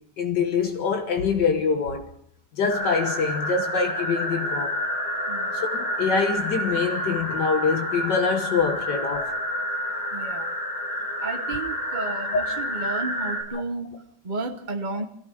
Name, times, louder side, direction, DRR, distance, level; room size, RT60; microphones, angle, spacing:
voice 1, 0.2-2.1 2.6-4.8 5.5-9.5 12.3-12.4, left 5 dB, 80° left, 2.0 m, -25 dB
sound 1, 2.7-13.4, equal, 65° left, 7.9 m, -29 dB
voice 2, 5.3-5.6 10.1-10.6 11.2-15.1, right 3 dB, 30° right, 1.0 m, -33 dB
24.0 x 16.5 x 6.4 m
omnidirectional pair, 1.9 m